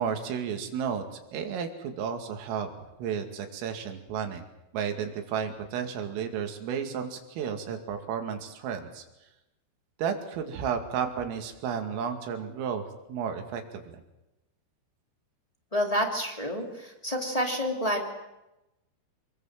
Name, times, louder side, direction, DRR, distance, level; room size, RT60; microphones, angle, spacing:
voice 1, 0.0-2.7 3.0-4.5 4.7-9.0 10.0-14.0, right 7 dB, 90° right, 6 dB, 5.0 m, -32 dB
voice 2, 15.7-18.0, equal, 15° left, 3 dB, 1.1 m, -28 dB
26.5 x 21.5 x 7.5 m, 0.94 s
omnidirectional pair, 5.7 m